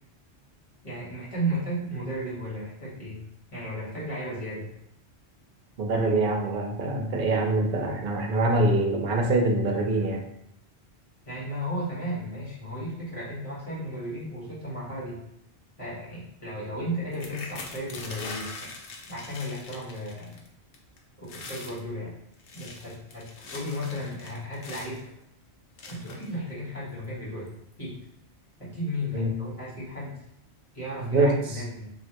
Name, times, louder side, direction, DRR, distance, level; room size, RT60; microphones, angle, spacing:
voice 1, 0.8-3.2 3.5-4.7 11.2-15.2 15.8-18.7 19.1-20.4 21.2-22.1 22.5-25.0 25.9-27.5 27.8-28.0 28.6-30.2 30.7-31.9, equal, 30° left, -8 dB, 1.3 m, -34 dB
voice 2, 5.8-10.2 29.1-29.3 31.0-31.4, right 2 dB, 55° right, 1 dB, 0.7 m, -24 dB
sound 1, 17.1-20.5 20.7-21.0 21.2-21.8 22.3-25.0 25.8-26.3 27.0-27.1 27.5-27.7, left 3 dB, 90° left, 0.9 m, -42 dB
3.2 x 2.4 x 2.9 m, 0.75 s
omnidirectional pair, 1.1 m